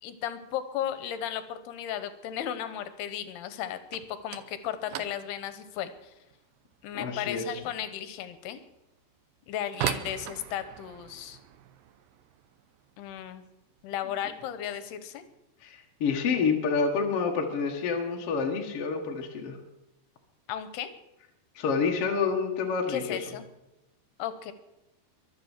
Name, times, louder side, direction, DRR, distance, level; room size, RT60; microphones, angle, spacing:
voice 1, 0.0-6.1 6.8-8.6 9.5-11.4 13.0-13.4 13.8-15.2 20.5-20.9 22.9-23.4 24.2-24.5, left 10 dB, 80° left, 11 dB, 2.9 m, -35 dB
sound 1, 3.8-14.6 14.8-15.4 15.7-16.0 16.3-16.4 17.1-17.2 18.1-18.4 18.7-19.2, right 12 dB, 80° right, 2.1 m, -41 dB
voice 2, 6.9-7.6 15.6-19.6 21.6-23.2, left 5 dB, 50° left, 2 dB, 1.9 m, -28 dB
23.0 x 7.9 x 7.3 m, 0.93 s
omnidirectional pair, 4.8 m